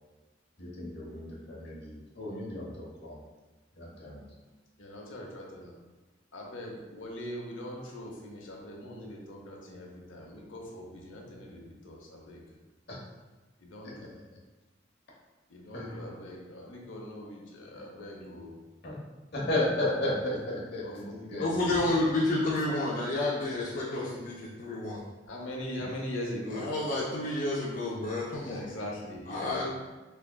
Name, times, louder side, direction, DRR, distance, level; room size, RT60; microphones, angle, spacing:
voice 1, 0.6-3.2 3.8-4.2 12.9-13.0 13.8-13.9 15.7-16.1 18.8-19.0 19.3-21.7 23.9-24.1, left 1 dB, 60° left, -5 dB, 1.0 m, -34 dB
voice 2, 4.8-5.7 6.3-12.4 13.6-14.1 15.5-18.6 19.9-20.0 20.8-22.8 25.3-26.7 28.5-29.6, left 1 dB, 85° left, -1 dB, 0.7 m, -41 dB
voice 3, 21.4-25.0 26.5-28.6 29.3-29.7, left 2 dB, 45° left, -6 dB, 0.5 m, -30 dB
3.4 x 3.4 x 2.2 m, 1.2 s
head